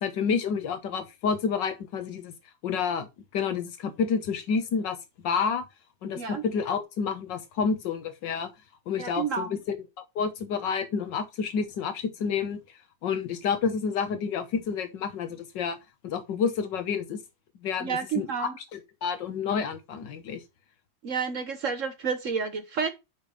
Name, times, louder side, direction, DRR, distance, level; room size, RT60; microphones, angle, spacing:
voice 1, 0.0-2.3 2.6-3.1 3.3-5.0 5.2-5.6 6.0-8.5 8.9-9.8 10.1-12.6 13.0-15.8 16.0-17.2 17.6-20.4, left 6 dB, 75° left, 1.8 m, -29 dB
voice 2, 9.0-9.6 17.8-18.5 21.0-22.9, right 6 dB, 55° right, 1.0 m, -30 dB
6.6 x 5.0 x 5.4 m
omnidirectional pair, 2.0 m